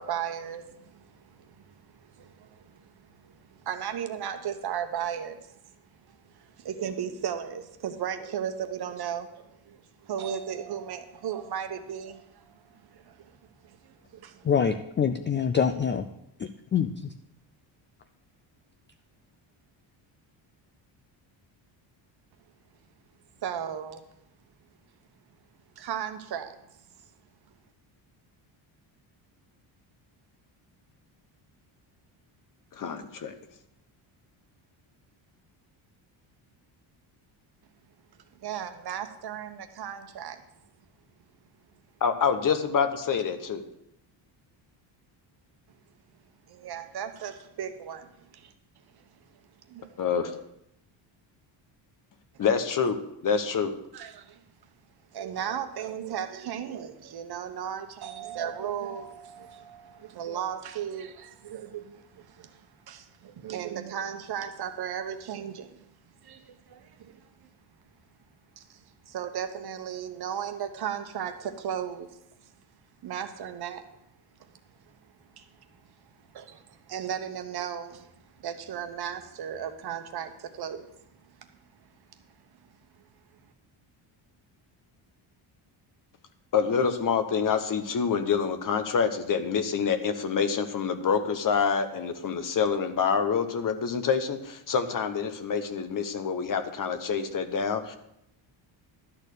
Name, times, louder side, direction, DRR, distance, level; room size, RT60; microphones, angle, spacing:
voice 1, 0.0-5.6 6.1-13.3 13.6-14.5 23.4-24.0 25.8-26.6 38.4-40.4 46.5-48.5 49.0-49.1 49.7-50.0 53.9-54.4 55.1-65.9 66.2-67.5 68.6-68.8 69.1-72.2 73.0-73.9 74.4-74.5 75.3-75.5 75.8-75.9 76.3-78.1 78.4-80.9 81.2-81.4, right 8 dB, 50° right, 1.1 m, -36 dB
voice 2, 14.4-16.0 16.4-17.1, left 7 dB, 25° left, 0.4 m, -25 dB
voice 3, 32.7-33.3 42.0-43.6 50.0-50.3 52.4-53.7 86.5-98.0, left 6 dB, 40° left, 1.0 m, -27 dB
12.0 x 4.4 x 8.2 m
cardioid pair, 125°, 48 cm